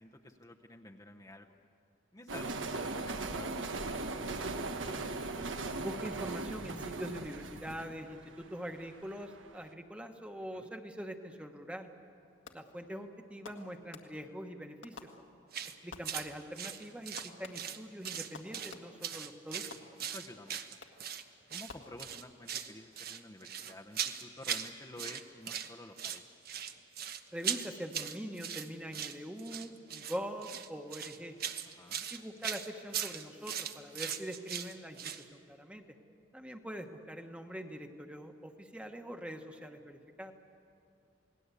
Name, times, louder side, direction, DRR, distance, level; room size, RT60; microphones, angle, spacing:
voice 1, 0.0-1.5 2.1-3.9 4.3-5.1 10.5-10.7 20.0-20.6 21.5-26.2 31.8-32.1, left 1 dB, 20° left, 1 dB, 0.8 m, -51 dB
sound 1, 2.3-9.3, right 3 dB, 85° right, 1.3 m, -38 dB
voice 2, 5.8-11.9 12.5-15.1 15.8-19.6 27.3-31.4 32.1-35.8 36.3-40.3, equal, 5° right, 5 dB, 1.2 m, -43 dB
Fireworks, 12.5-12.9 13.4-14.4 14.8-15.6 15.9-16.6 17.2-19.2 19.7-20.3 20.8-21.2 21.7-22.4, left 4 dB, 80° left, 1.8 m, -53 dB
sound 2, 15.5-15.7 16.0-16.3 16.6-17.8 18.0-18.7 19.0-21.2 21.5-21.7 22.0-22.7 23.0-24.7 25.0-25.7 26.0-35.2, right 8 dB, 50° right, 1.1 m, -39 dB
28.5 x 19.0 x 8.3 m, 2.6 s
head